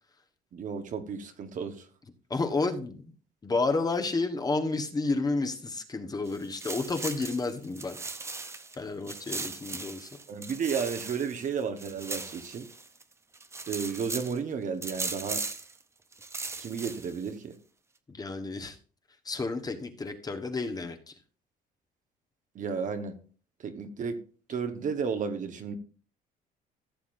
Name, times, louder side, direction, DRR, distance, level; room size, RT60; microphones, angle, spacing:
voice 1, 0.5-1.8 10.3-12.7 13.7-15.4 16.6-17.5 22.5-23.1 23.6-24.2 24.5-25.8, right 6 dB, 50° right, 1.3 m, -33 dB
voice 2, 2.3-3.1 3.4-8.0 8.7-10.1 18.1-18.8 19.2-21.1, left 3 dB, 20° left, 1.3 m, -31 dB
sound 1, 6.3-8.8 9.1-13.0 13.3-14.4 14.8-15.7 16.1-17.3, right 3 dB, 15° right, 0.7 m, -38 dB
15.0 x 7.1 x 2.6 m
cardioid pair, 110°, 17 cm